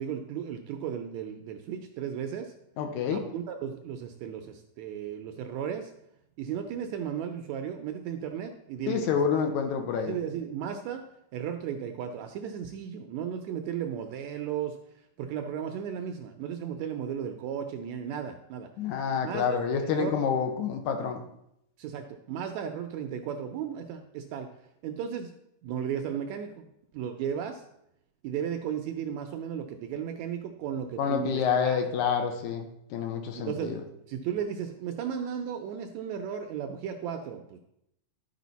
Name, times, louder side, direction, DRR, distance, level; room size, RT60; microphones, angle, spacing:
voice 1, 0.0-2.5 3.1-5.9 6.4-9.2 10.0-11.0 11.3-14.8 15.2-18.7 19.2-20.2 21.8-24.5 24.8-25.3 25.6-26.7 26.9-27.6 28.2-31.8 33.4-33.8 34.1-37.6, right 8 dB, 80° right, 5 dB, 1.7 m, -35 dB
voice 2, 2.8-3.2 8.9-10.1 18.8-21.2 31.0-33.8, left 7 dB, 75° left, 5 dB, 2.1 m, -28 dB
12.0 x 5.0 x 4.0 m, 0.79 s
omnidirectional pair, 3.7 m